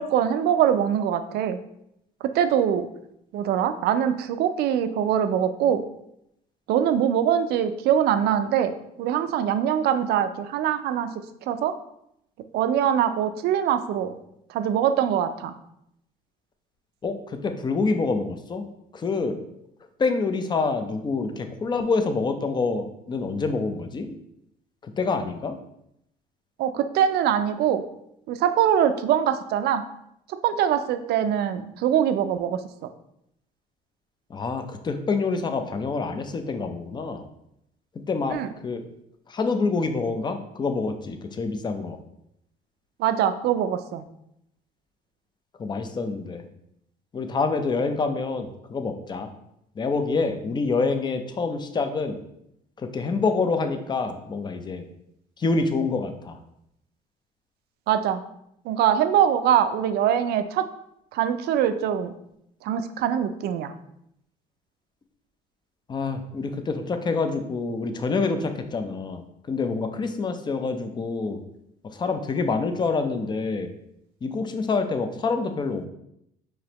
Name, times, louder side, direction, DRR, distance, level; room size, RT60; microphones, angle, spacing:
voice 1, 0.0-1.6 2.2-2.9 3.3-5.9 6.7-11.1 11.4-11.7 12.5-14.2 14.5-15.5 26.6-27.9 28.3-29.8 30.4-32.6 38.3-38.5 43.0-44.0 57.9-58.2 58.6-60.6 61.1-62.1 62.6-63.7, right 9 dB, 70° right, 10 dB, 0.4 m, -23 dB
voice 2, 17.0-18.6 18.9-19.4 20.0-24.2 24.8-25.6 34.3-37.2 38.1-38.4 38.6-38.8 39.3-42.0 45.6-46.4 47.1-49.3 49.8-52.2 52.8-54.9 55.4-56.4 65.9-71.4 71.8-73.7 74.2-75.9, left 4 dB, 25° left, 7 dB, 0.5 m, -27 dB
4.9 x 3.0 x 2.9 m, 0.78 s
cardioid pair, 110°, 17 cm